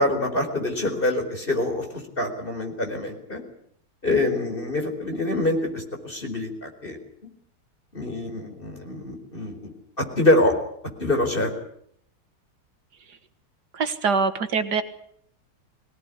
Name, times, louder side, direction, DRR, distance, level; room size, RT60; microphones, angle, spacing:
voice 1, 0.0-3.4 4.0-7.0 7.9-9.7 10.2-10.5 11.0-11.5, left 1 dB, 30° left, 4 dB, 4.8 m, -25 dB
voice 2, 13.8-14.8, right 5 dB, 85° right, 9 dB, 2.3 m, -23 dB
23.5 x 18.5 x 9.9 m, 0.67 s
omnidirectional pair, 1.7 m